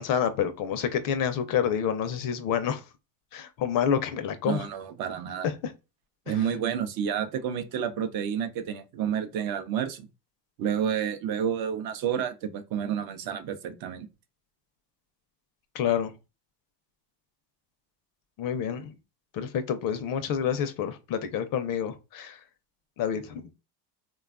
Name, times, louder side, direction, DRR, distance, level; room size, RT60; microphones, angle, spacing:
voice 1, 0.0-2.8 3.3-4.7 5.4-5.7 15.7-16.1 18.4-18.9 19.3-22.4 23.0-23.5, left 8 dB, 45° left, 0.5 m, -28 dB
voice 2, 4.5-5.5 6.3-10.1 10.6-14.1, right 8 dB, 50° right, 0.5 m, -30 dB
3.2 x 2.3 x 2.3 m
cardioid pair, 125°, 47 cm